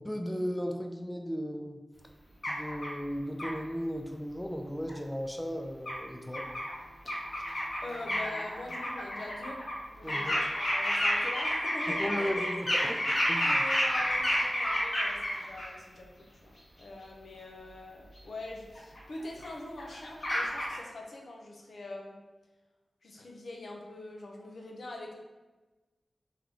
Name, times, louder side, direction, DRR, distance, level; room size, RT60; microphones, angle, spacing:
voice 1, 0.0-1.8 2.5-6.4 10.0-10.4 11.9-13.6, equal, 5° left, 3 dB, 0.3 m, -36 dB
sound 1, 2.4-2.9 3.4-3.5 4.9-5.0 5.8-5.9 6.3-6.8 7.0-9.7 10.1-15.7 18.2-18.3 18.7-19.5 19.8-20.8, equal, 55° left, 1.2 m, -30 dB
voice 2, 7.3-9.6 9.9-12.3 13.4-22.2 23.0-25.1, left 2 dB, 70° left, 0 dB, 0.7 m, -44 dB
3.7 x 2.8 x 3.5 m, 1.2 s
wide cardioid pair, 85°, 0 cm